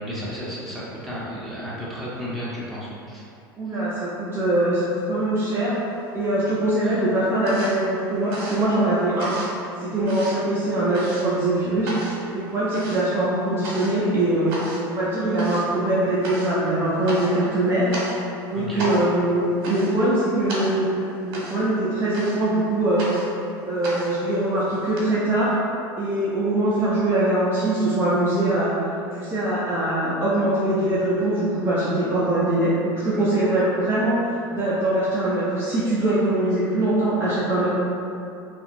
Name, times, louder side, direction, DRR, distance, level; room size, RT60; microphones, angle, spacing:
voice 1, 0.0-3.2 3.7-3.8 6.8-7.0 18.5-18.9, equal, ahead, -9 dB, 0.8 m, -33 dB
voice 2, 3.6-5.8 6.1-9.3 9.8-11.9 12.3-14.5 14.9-17.9 18.5-20.9 21.2-23.1 23.7-25.5 26.0-37.7, right 1 dB, 20° right, -10 dB, 0.5 m, -22 dB
sound 1, 5.7-6.5 6.7-25.0, right 1 dB, 70° right, 0.9 m, -35 dB
2.8 x 2.4 x 2.5 m, 2.6 s
hypercardioid pair, 90°, 12 cm